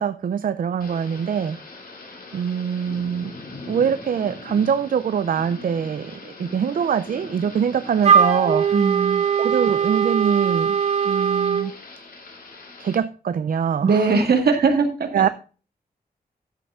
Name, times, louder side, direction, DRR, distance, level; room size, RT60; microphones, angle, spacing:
voice 1, 0.0-1.6 2.3-3.3 3.7-8.7 9.4-11.7 12.8-14.1 14.5-14.7 15.1-15.3, right 7 dB, 60° right, 0.4 m, -23 dB
Thunder / Rain, 0.8-13.0, left 3 dB, 65° left, 2.3 m, -41 dB
Wind instrument woodwind instrument, 8.0-11.7, right 7 dB, 45° right, 1.4 m, -20 dB
voice 2, 8.7-9.3 13.8-15.2, right 4 dB, 85° right, 1.9 m, -20 dB
11.0 x 7.8 x 3.6 m
wide cardioid pair, 165°, 16 cm